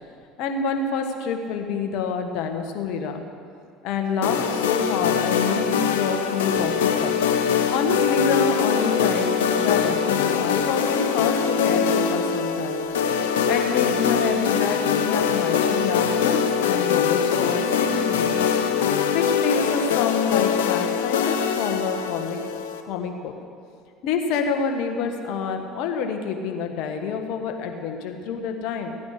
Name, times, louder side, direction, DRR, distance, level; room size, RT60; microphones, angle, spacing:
voice 1, 0.4-3.2 3.8-7.1 7.7-12.8 13.5-18.5 19.1-22.4 22.8-23.3 24.0-29.0, left 5 dB, 65° left, 5 dB, 1.5 m, -27 dB
sound 1, 4.2-22.8, left 7 dB, 80° left, 0.9 m, -23 dB
15.5 x 9.5 x 6.6 m, 2.4 s
hypercardioid pair, 70°, 0 cm